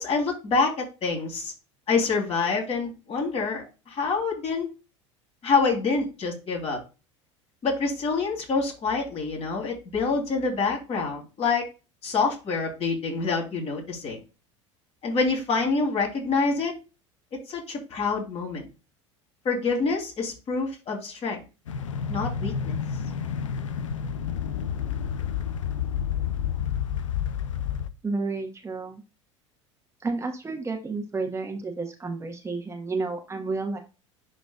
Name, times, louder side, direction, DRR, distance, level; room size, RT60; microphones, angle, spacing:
voice 1, 0.0-1.5 1.9-4.7 5.4-6.8 7.6-11.7 12.0-14.2 15.0-16.8 17.3-18.7 19.5-21.4 22.1-22.7, left 4 dB, 40° left, 1 dB, 3.4 m, -26 dB
sound 1, 21.7-27.9, left 8 dB, 85° left, 0.5 m, -29 dB
voice 2, 28.0-29.0 30.0-33.8, right 3 dB, 15° right, 3 dB, 1.3 m, -31 dB
11.5 x 3.9 x 2.4 m, 0.30 s
hypercardioid pair, 80°, 16 cm